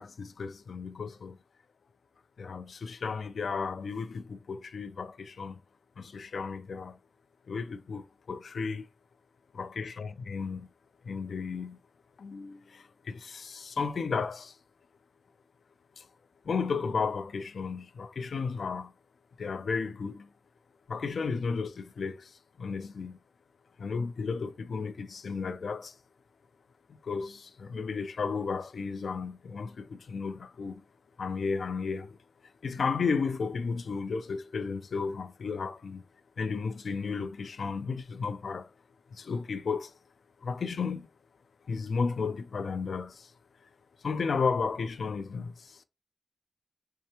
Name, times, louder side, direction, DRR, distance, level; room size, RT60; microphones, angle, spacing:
voice 1, 0.0-1.4 2.4-5.6 6.0-7.0 7.5-8.9 9.5-10.7 11.0-11.8 12.2-14.6 16.0-16.1 16.4-18.9 19.4-20.3 20.9-23.2 23.8-26.0 26.9-30.8 31.2-32.2 32.6-36.0 36.4-38.7 39.1-39.9 40.4-41.1 41.7-43.3 44.0-45.8, left 5 dB, 85° left, 0.4 m, -33 dB
4.3 x 3.3 x 2.9 m
wide cardioid pair, 90°, 0 cm